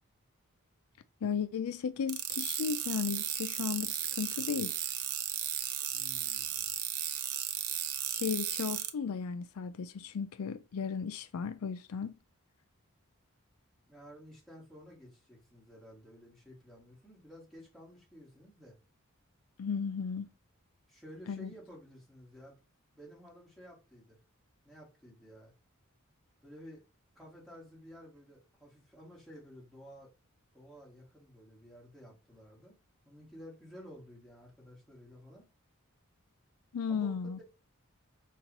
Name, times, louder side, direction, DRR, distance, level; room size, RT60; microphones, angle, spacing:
voice 1, 1.2-4.7 8.1-12.1 19.6-20.3 21.3-21.5 36.7-37.4, left 6 dB, 85° left, 0.4 m, -35 dB
sound 1, 2.1-8.9, right 11 dB, 85° right, 0.5 m, -35 dB
voice 2, 5.9-6.7 13.9-18.8 20.9-22.6 22.9-24.2 24.6-25.5 26.4-26.8 27.2-30.1 30.5-32.8 33.0-35.5 36.9-37.4, equal, ahead, 1.9 m, -53 dB
5.2 x 2.4 x 2.9 m
head